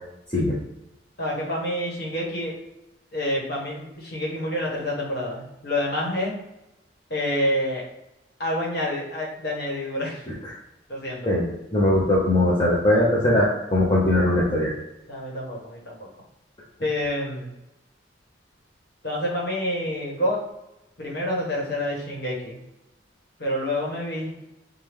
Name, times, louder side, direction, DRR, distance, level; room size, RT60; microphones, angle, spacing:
voice 1, 1.2-2.5 3.1-6.4 7.1-7.8 8.4-10.2 10.9-11.3 15.1-16.1 16.8-17.5 19.0-20.4 21.0-22.6 23.4-24.3, left 1 dB, 60° left, -3 dB, 1.3 m, -28 dB
voice 2, 11.2-14.7, left 1 dB, 25° left, -6 dB, 0.7 m, -20 dB
4.7 x 2.3 x 3.5 m, 0.92 s
head